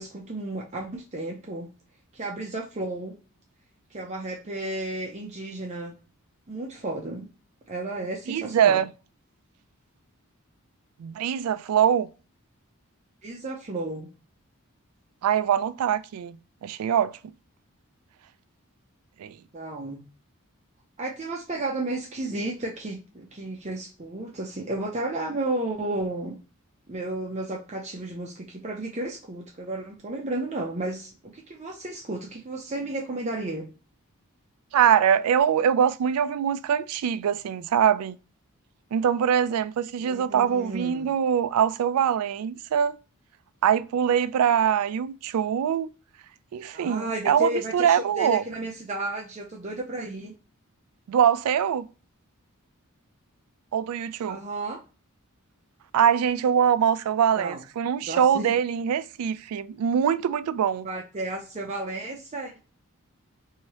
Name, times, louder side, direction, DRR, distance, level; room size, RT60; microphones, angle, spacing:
voice 1, 0.0-1.7 2.1-3.2 3.9-6.0 6.5-7.3 7.7-8.8 13.2-14.1 19.5-20.0 21.0-26.4 26.9-33.7 40.0-41.1 46.7-50.3 54.3-54.8 57.4-57.6 58.0-58.5 60.8-62.5, right 2 dB, 30° right, 0.5 m, -33 dB
voice 2, 8.3-8.9 11.0-12.1 15.2-17.1 19.2-19.4 34.7-38.2 38.9-43.0 43.6-45.9 46.5-48.4 51.1-51.9 53.7-54.4 55.9-60.9, right 8 dB, 90° right, 0.3 m, -23 dB
3.1 x 2.7 x 2.8 m
head